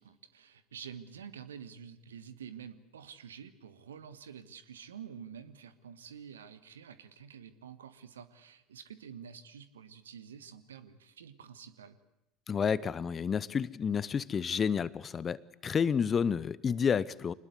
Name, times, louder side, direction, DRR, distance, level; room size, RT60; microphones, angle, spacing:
voice 1, 0.0-12.0, right 7 dB, 75° right, 13 dB, 1.4 m, -48 dB
voice 2, 12.5-17.3, left 6 dB, 30° left, 20 dB, 0.8 m, -30 dB
25.5 x 20.5 x 8.2 m, 0.86 s
figure-of-eight pair, 70°, 0 cm